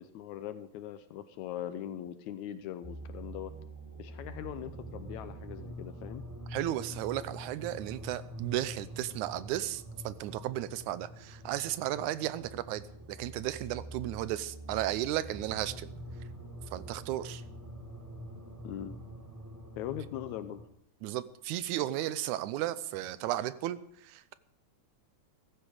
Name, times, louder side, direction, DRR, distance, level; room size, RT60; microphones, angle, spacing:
voice 1, 0.0-3.5 4.0-6.2 18.6-19.0 19.8-20.6, left 11 dB, 80° left, 11 dB, 2.0 m, -41 dB
sound 1, 2.8-20.7, right 1 dB, 15° right, 0.6 m, -45 dB
voice 2, 6.5-12.8 13.1-15.9 16.7-17.4 21.0-24.4, right 13 dB, 85° right, 15 dB, 2.2 m, -34 dB
16.0 x 14.0 x 4.9 m, 0.68 s
omnidirectional pair, 3.4 m